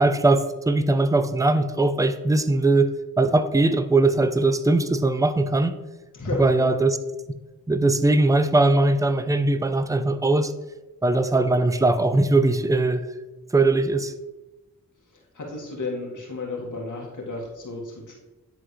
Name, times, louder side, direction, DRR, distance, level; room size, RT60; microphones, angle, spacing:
voice 1, 0.0-5.7 6.4-7.0 7.7-10.5 11.0-13.0 13.5-14.1, right 2 dB, 10° right, 11 dB, 0.5 m, -20 dB
voice 2, 6.1-6.7 15.3-18.1, left 3 dB, 70° left, -1 dB, 1.8 m, -32 dB
10.5 x 3.9 x 3.2 m, 1.1 s
cardioid pair, 50°, 32 cm